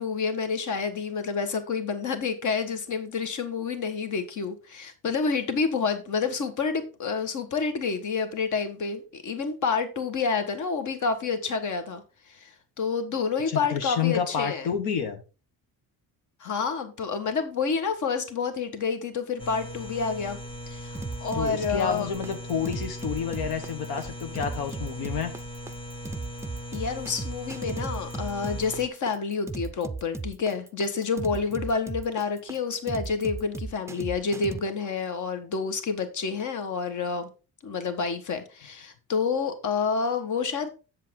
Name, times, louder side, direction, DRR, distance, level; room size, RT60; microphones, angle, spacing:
voice 1, 0.0-12.0 12.3-14.7 16.4-20.4 20.7-22.1 26.7-37.3 37.6-40.7, left 5 dB, 55° left, 8 dB, 1.6 m, -29 dB
voice 2, 13.5-15.2 21.3-25.3, left 7 dB, 85° left, 7 dB, 1.4 m, -29 dB
sound 1, 19.4-28.9, equal, 15° left, 0.8 m, -39 dB
sound 2, 20.9-34.6, right 3 dB, 10° right, 0.4 m, -36 dB
7.6 x 7.5 x 3.8 m, 0.32 s
cardioid pair, 120°, 37 cm